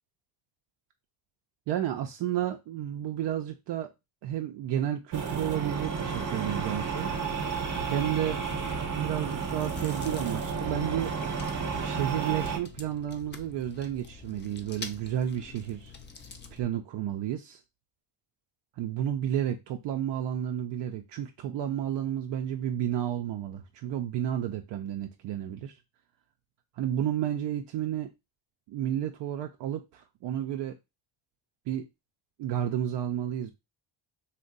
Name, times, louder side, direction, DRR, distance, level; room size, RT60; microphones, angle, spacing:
voice 1, 1.7-3.9 4.2-7.1 7.4-7.6 7.9-8.4 8.9-11.1 11.8-15.9 16.5-17.6 18.8-25.7 26.8-28.1 28.7-30.8 31.7-31.9 32.4-33.5, right 10 dB, 65° right, 0.5 m, -31 dB
sound 1, 5.1-12.6, right 5 dB, 40° right, 0.8 m, -32 dB
Chewing mastication, 8.5-16.6, left 5 dB, 25° left, 0.5 m, -47 dB
2.6 x 2.1 x 3.7 m
cardioid pair, 75°, 47 cm